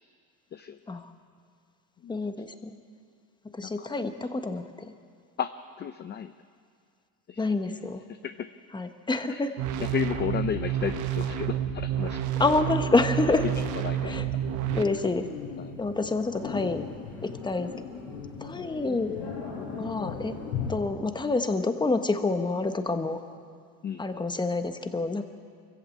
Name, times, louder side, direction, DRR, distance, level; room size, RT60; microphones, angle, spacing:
voice 1, 0.5-0.9 2.0-2.2 3.6-3.9 5.4-5.5 5.8-6.4 7.3-7.5 8.1-8.5 9.3-9.4 9.8-12.6 13.4-13.5 13.8-14.2 15.6-15.7 23.8-24.2, left 8 dB, 35° left, 10 dB, 0.6 m, -33 dB
voice 2, 2.1-2.8 3.5-4.9 7.4-8.0 8.7-9.5 12.4-13.4 14.0-14.3 14.7-15.3 15.8-16.8 17.2-17.7 18.4-19.1 19.8-20.4 20.7-23.2 24.0-25.2, left 3 dB, 15° left, 8 dB, 1.3 m, -27 dB
sound 1, 9.6-14.8, right 10 dB, 65° right, 1.2 m, -29 dB
sound 2, 13.4-20.7, left 6 dB, 85° left, 6.3 m, -38 dB
23.5 x 15.0 x 8.6 m, 2.2 s
cardioid pair, 110°, 32 cm